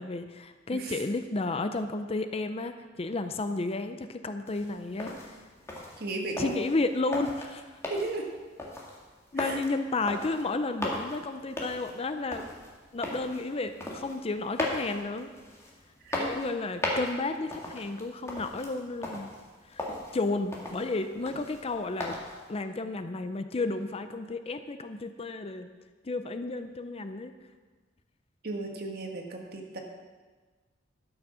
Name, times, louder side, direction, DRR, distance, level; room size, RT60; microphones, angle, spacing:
voice 1, 0.0-5.4 6.4-7.6 9.3-12.5 12.9-15.3 16.2-19.3 19.7-19.9 20.1-22.2 22.5-25.7 26.0-27.3, left 3 dB, 30° left, 9 dB, 0.5 m, -32 dB
sound 1, 4.5-22.5, left 1 dB, 15° left, 1.8 m, -39 dB
voice 2, 6.0-6.6 7.9-8.2 9.4-9.6 16.0-16.3 28.4-29.8, right 2 dB, 55° right, 2 dB, 1.6 m, -35 dB
12.0 x 6.3 x 6.3 m, 1.4 s
head